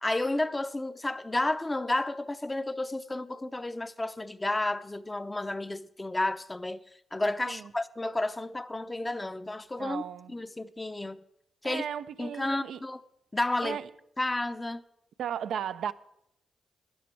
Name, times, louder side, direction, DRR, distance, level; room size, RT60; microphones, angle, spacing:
voice 1, 0.0-6.8 7.1-10.0 10.3-11.2 11.6-11.8 12.2-13.0 13.3-13.8 14.2-14.8, left 2 dB, 20° left, 0.6 m, -31 dB
voice 2, 9.8-10.4 11.6-12.8 13.6-13.9 15.2-15.9, right 9 dB, 80° right, 0.4 m, -35 dB
12.5 x 10.0 x 4.6 m
supercardioid pair, 50°, 0 cm